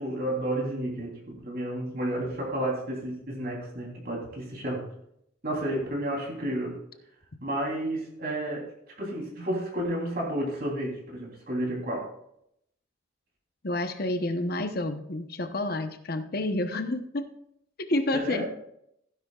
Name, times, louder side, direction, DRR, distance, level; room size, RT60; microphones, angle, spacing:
voice 1, 0.0-4.9 5.4-6.8 7.4-8.7 9.0-12.1 18.1-18.5, right 1 dB, 50° right, -3 dB, 3.4 m, -31 dB
voice 2, 13.6-17.3 17.8-18.4, left 2 dB, 50° left, 8 dB, 1.0 m, -29 dB
16.0 x 10.0 x 2.4 m, 0.75 s
head